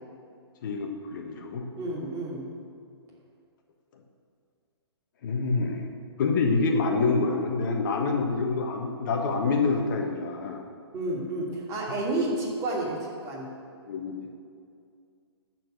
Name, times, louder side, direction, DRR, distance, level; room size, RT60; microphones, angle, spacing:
voice 1, 0.6-1.6 5.2-5.9 6.2-10.6 13.9-14.2, left 4 dB, 45° left, 2 dB, 1.2 m, -26 dB
voice 2, 1.8-2.4 10.9-13.5, right 2 dB, 25° right, -4 dB, 2.7 m, -30 dB
13.0 x 4.6 x 8.0 m, 2.3 s
figure-of-eight pair, 125°, 14 cm